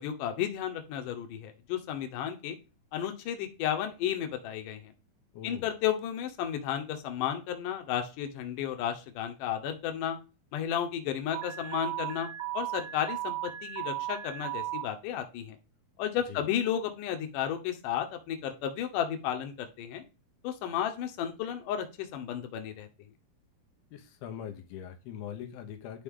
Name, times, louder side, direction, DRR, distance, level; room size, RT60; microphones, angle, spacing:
voice 1, 0.0-2.6 2.9-4.9 5.4-10.2 10.5-15.6 16.0-20.0 20.4-22.9, left 10 dB, 70° left, 5 dB, 2.3 m, -33 dB
voice 2, 5.3-5.7 16.3-16.5 23.9-26.0, left 9 dB, 90° left, 5 dB, 2.9 m, -42 dB
Alarm, 11.3-14.8, right 14 dB, 70° right, 2.3 m, -36 dB
11.0 x 4.0 x 3.7 m, 0.30 s
omnidirectional pair, 4.3 m